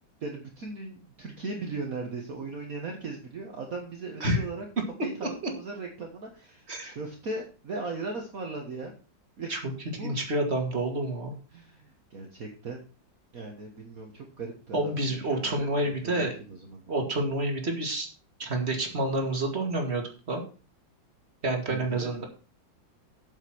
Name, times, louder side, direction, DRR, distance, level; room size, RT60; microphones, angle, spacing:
voice 1, 0.2-4.7 5.0-8.9 9.4-9.6 10.0-10.2 11.5-12.8 13.3-16.9 21.7-22.1, right 3 dB, 50° right, 1 dB, 1.8 m, -38 dB
voice 2, 5.0-5.5 6.7-6.9 9.5-9.6 9.9-11.3 14.7-16.3 16.9-18.1 18.4-20.4 21.4-22.2, right 1 dB, 35° right, 3 dB, 2.5 m, -29 dB
8.2 x 7.4 x 6.1 m, 0.36 s
omnidirectional pair, 2.0 m